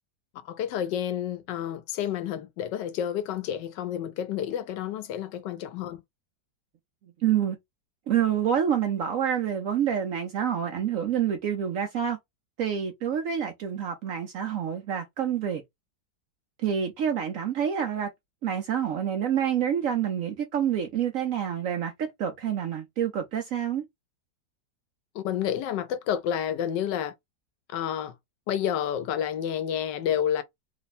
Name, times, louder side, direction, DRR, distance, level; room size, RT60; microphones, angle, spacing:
voice 1, 0.4-6.0 25.1-27.1 27.7-28.1 28.5-30.4, left 9 dB, 85° left, 1.3 m, -30 dB
voice 2, 7.2-7.6 8.1-12.2 12.6-15.6 16.6-18.1 18.4-23.8, right 9 dB, 70° right, 0.8 m, -27 dB
3.2 x 2.2 x 4.0 m
omnidirectional pair, 1.9 m